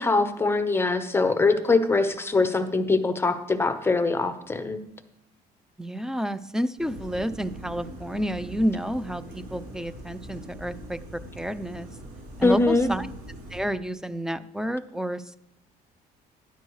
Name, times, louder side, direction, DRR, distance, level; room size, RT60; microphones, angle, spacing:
voice 1, 0.0-4.8 12.4-12.9, left 3 dB, 15° left, 9 dB, 0.9 m, -23 dB
voice 2, 5.8-11.9 12.4-13.1 13.5-15.4, equal, 5° right, 15 dB, 0.4 m, -30 dB
sound 1, 6.8-13.6, right 1 dB, 80° right, 4.6 m, -42 dB
12.5 x 10.5 x 3.2 m, 0.81 s
cardioid pair, 110°, 17 cm